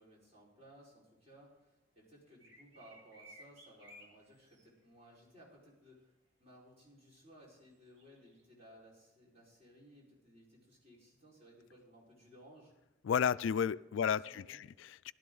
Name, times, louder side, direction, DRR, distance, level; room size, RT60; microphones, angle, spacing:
voice 1, 0.0-6.1 6.4-12.7 14.0-14.6, equal, 35° right, -5 dB, 4.7 m, -60 dB
sound 1, 2.4-4.7 8.0-8.4, equal, 65° right, 2.0 m, -58 dB
voice 2, 13.0-15.1, left 7 dB, 75° left, 17 dB, 0.3 m, -33 dB
15.0 x 12.0 x 3.9 m, 1.1 s
head